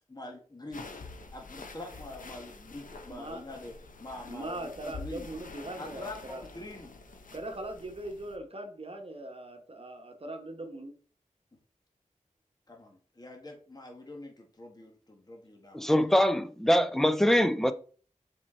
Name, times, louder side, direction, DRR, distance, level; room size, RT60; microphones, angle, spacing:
voice 1, 0.1-1.0 1.3-5.3 5.8-6.9 12.7-15.9 17.3-17.4, left 1 dB, 30° left, 1.5 m, -45 dB
sound 1, 0.7-8.4, left 3 dB, 85° left, 1.0 m, -47 dB
voice 2, 3.1-3.4 4.3-6.4 7.3-10.9, right 1 dB, 45° right, 1.3 m, -40 dB
voice 3, 15.7-17.7, equal, 5° left, 0.7 m, -23 dB
7.3 x 4.5 x 4.4 m
wide cardioid pair, 80°, 13 cm